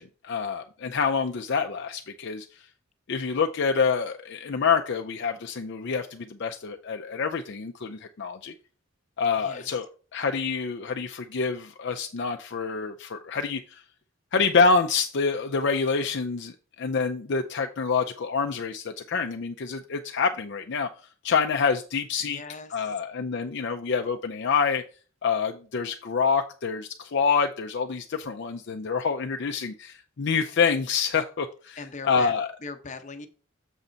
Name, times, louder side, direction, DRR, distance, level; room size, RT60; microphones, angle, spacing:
voice 1, 0.0-2.6 3.1-8.5 9.2-13.8 14.3-20.9 21.2-22.4 22.7-24.8 25.2-31.8 32.0-32.5, left 5 dB, 55° left, 5 dB, 0.5 m, -27 dB
voice 2, 9.3-9.8 22.2-22.9 31.8-32.3 32.6-33.3, left 4 dB, 35° left, 7 dB, 0.8 m, -40 dB
7.1 x 5.5 x 3.9 m, 0.38 s
head